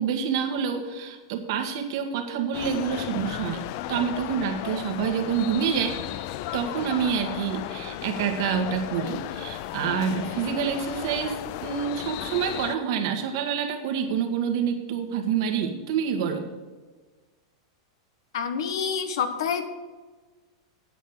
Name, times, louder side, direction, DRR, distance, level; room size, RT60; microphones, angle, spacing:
voice 1, 0.0-6.2 6.5-16.5, right 7 dB, 65° right, 5 dB, 1.6 m, -27 dB
sound 1, 2.5-12.8, left 14 dB, 55° left, 0.4 m, -35 dB
voice 2, 18.3-19.7, left 7 dB, 75° left, 9 dB, 1.2 m, -27 dB
9.4 x 5.5 x 8.2 m, 1.3 s
hypercardioid pair, 130°, 2 cm